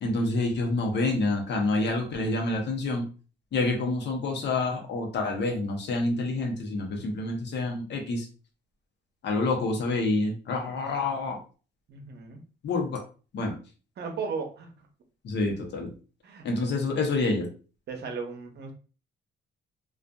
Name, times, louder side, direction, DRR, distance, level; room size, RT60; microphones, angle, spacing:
voice 1, 0.0-3.1 3.5-8.3 9.2-11.4 12.6-13.0 13.3-13.6 15.2-15.9 16.4-17.5, left 2 dB, 60° left, 1 dB, 0.8 m, -27 dB
voice 2, 11.9-12.4 14.0-14.7 16.2-16.5 17.9-18.7, right 5 dB, 55° right, 4 dB, 0.7 m, -35 dB
2.5 x 2.4 x 2.2 m, 0.36 s
cardioid pair, 90°, 20 cm